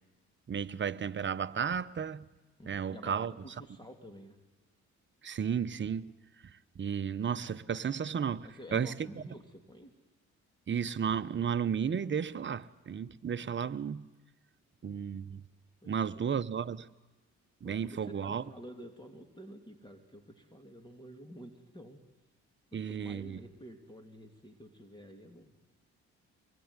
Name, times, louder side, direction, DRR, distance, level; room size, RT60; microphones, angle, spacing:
voice 1, 0.5-2.3 2.6-3.3 5.2-6.1 6.4-8.9 10.7-14.1 14.8-15.4 15.9-16.9 17.6-18.4 22.7-23.4, right 7 dB, 40° right, 1.0 m, -33 dB
voice 2, 2.6-4.4 8.4-9.9 15.8-15.9 16.3-16.5 17.6-22.0 22.7-25.5, equal, 15° left, 2.9 m, -50 dB
25.0 x 20.5 x 9.8 m
cardioid pair, 90°, 30 cm